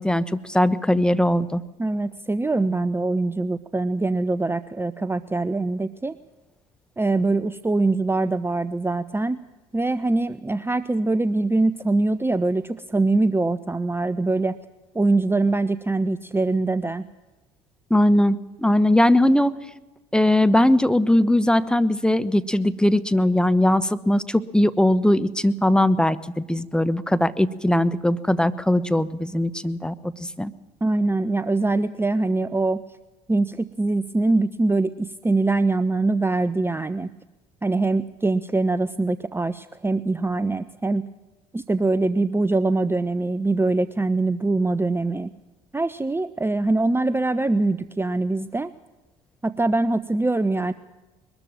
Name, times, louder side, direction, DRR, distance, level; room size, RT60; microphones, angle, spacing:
voice 1, 0.0-1.6 17.9-19.6 20.1-30.5, left 1 dB, 5° left, 13 dB, 1.1 m, -20 dB
voice 2, 1.8-6.1 7.0-9.4 9.7-14.6 14.9-17.0 30.8-32.8 33.3-37.1 37.6-41.1 41.5-45.3 45.7-48.7 49.4-50.7, right 2 dB, 15° right, 14 dB, 0.8 m, -23 dB
22.0 x 13.0 x 8.9 m, 1.1 s
hypercardioid pair, 60°, 18 cm